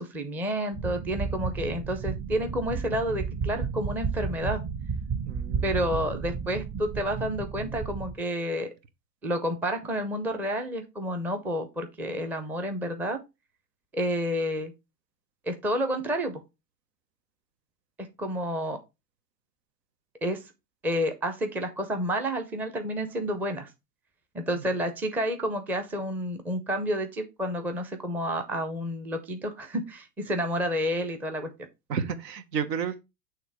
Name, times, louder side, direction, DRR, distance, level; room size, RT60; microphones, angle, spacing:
voice 1, 0.0-4.6 5.6-8.7 9.2-13.2 13.9-14.7 15.5-16.4 18.2-18.8 20.2-20.4 20.8-23.7 24.3-31.5, equal, 5° right, 0.4 m, -30 dB
sound 1, 0.7-8.2, right 5 dB, 35° right, 1.6 m, -32 dB
voice 2, 5.2-6.0 24.5-24.7 31.9-33.0, right 7 dB, 85° right, 1.2 m, -32 dB
6.5 x 3.4 x 4.6 m
hypercardioid pair, 125°, 48 cm